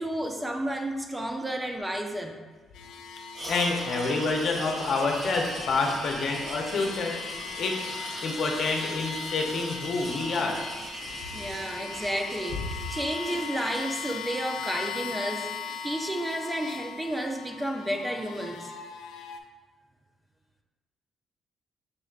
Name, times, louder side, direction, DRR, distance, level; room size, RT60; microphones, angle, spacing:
voice 1, 0.0-2.4 11.3-15.5 15.8-18.7, right 1 dB, 10° right, 3 dB, 0.4 m, -31 dB
sound 1, 2.7-19.4, left 6 dB, 85° left, 0.3 m, -39 dB
sound 2, 3.3-14.2, right 1 dB, 35° right, 1.0 m, -39 dB
voice 2, 3.5-7.1 7.6-7.8 8.2-10.5, left 3 dB, 65° left, 1 dB, 0.7 m, -27 dB
6.2 x 3.1 x 2.4 m, 1.3 s
cardioid pair, 90°, 0 cm